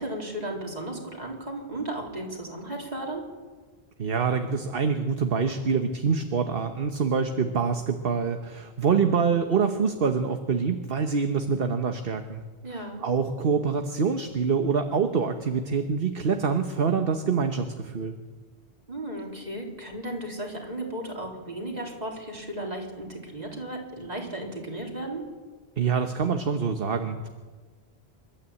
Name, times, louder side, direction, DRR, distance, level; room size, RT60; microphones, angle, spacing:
voice 1, 0.0-3.2 12.6-13.0 18.9-25.2, right 1 dB, 40° right, 0 dB, 4.0 m, -35 dB
voice 2, 4.0-12.4 12.8-18.2 25.8-27.3, right 5 dB, 60° right, 6 dB, 1.3 m, -25 dB
28.0 x 12.5 x 8.6 m, 1.4 s
omnidirectional pair, 1.1 m